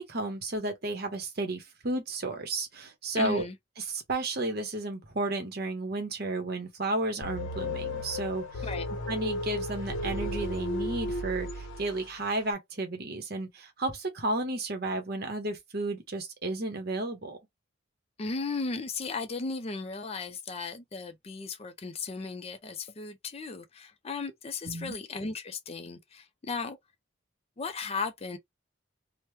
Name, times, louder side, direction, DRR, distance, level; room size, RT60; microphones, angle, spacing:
voice 1, 0.0-3.4 3.9-8.7 9.1-17.4 24.6-25.0, right 2 dB, 50° right, 0.9 m, -32 dB
voice 2, 3.2-3.6 8.6-8.9 18.2-26.8 27.6-28.4, left 4 dB, 30° left, 0.4 m, -36 dB
sound 1, 7.2-12.2, left 1 dB, 85° left, 0.7 m, -34 dB
3.0 x 2.1 x 3.2 m
head